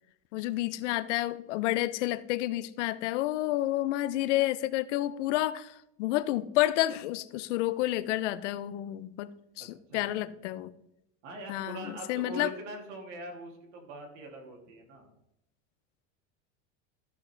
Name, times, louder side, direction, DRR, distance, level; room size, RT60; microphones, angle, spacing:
voice 1, 0.3-9.3 9.6-10.7 11.5-12.5, left 15 dB, 85° left, 0.7 m, -30 dB
voice 2, 9.6-10.4 11.2-15.1, right 2 dB, 85° right, 2.9 m, -43 dB
13.5 x 6.1 x 3.4 m
supercardioid pair, 155°, 35 cm